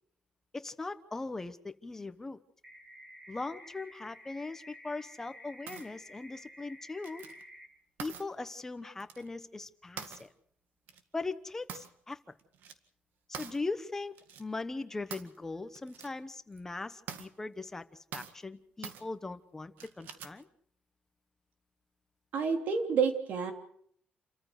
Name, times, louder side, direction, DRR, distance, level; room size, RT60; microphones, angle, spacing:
voice 1, 0.5-2.4 3.3-7.2 8.0-10.3 11.1-12.2 13.4-17.8 18.1-20.5, left 3 dB, 15° left, 10 dB, 1.0 m, -40 dB
sound 1, 2.6-7.6, equal, 15° right, 6.7 m, -52 dB
sound 2, 5.7-5.9 7.0-7.4 8.0-8.3 9.0-9.3 10.0-10.3 10.9-11.0 11.7-12.1 12.4-12.7 13.3-13.6 14.2-14.4 15.1-15.4 15.8-16.1 16.5-16.6 17.1-17.3 18.1-18.4 18.8-19.0 19.8-20.4, right 8 dB, 90° right, 1.9 m, -44 dB
voice 2, 22.3-23.5, right 6 dB, 65° right, 5 dB, 3.2 m, -29 dB
29.0 x 14.0 x 6.6 m, 0.67 s
cardioid pair, 175°, 3 cm